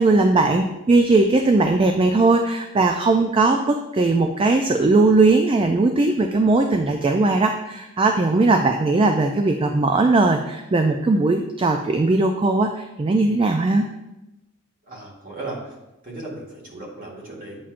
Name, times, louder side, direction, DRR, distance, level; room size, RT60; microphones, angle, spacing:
voice 1, 0.0-13.9, right 3 dB, 25° right, 5 dB, 0.3 m, -19 dB
voice 2, 14.9-15.6 16.0-17.6, right 2 dB, 40° right, -4 dB, 1.8 m, -36 dB
8.5 x 5.7 x 2.5 m, 0.97 s
head